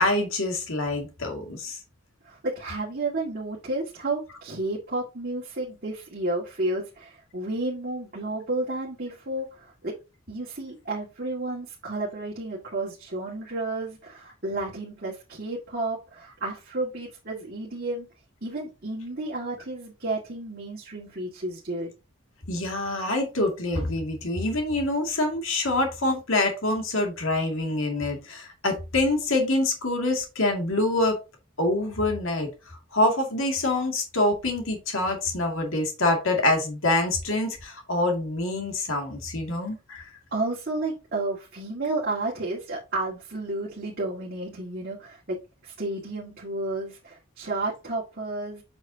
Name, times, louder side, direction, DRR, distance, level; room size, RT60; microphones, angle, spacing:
voice 1, 0.0-1.8 22.5-31.2 31.6-32.5 32.9-40.1, left 2 dB, 65° left, 3 dB, 2.3 m, -25 dB
voice 2, 2.2-9.9 10.3-18.1 18.4-21.9 40.3-45.4 45.6-48.6, right 2 dB, 45° right, -5 dB, 2.0 m, -31 dB
8.0 x 6.1 x 2.8 m, 0.28 s
head